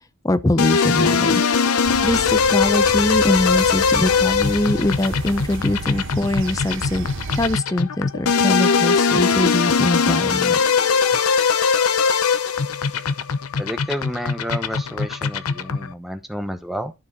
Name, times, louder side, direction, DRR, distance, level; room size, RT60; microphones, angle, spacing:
voice 1, 0.2-7.1 7.3-10.6, left 1 dB, 15° left, 0.5 m, -23 dB
sound 1, 0.6-15.9, left 5 dB, 80° left, 0.7 m, -20 dB
sound 2, 1.8-7.6, right 4 dB, 55° right, 0.6 m, -32 dB
voice 2, 13.6-16.9, equal, ahead, 0.9 m, -30 dB
12.5 x 4.6 x 4.0 m
head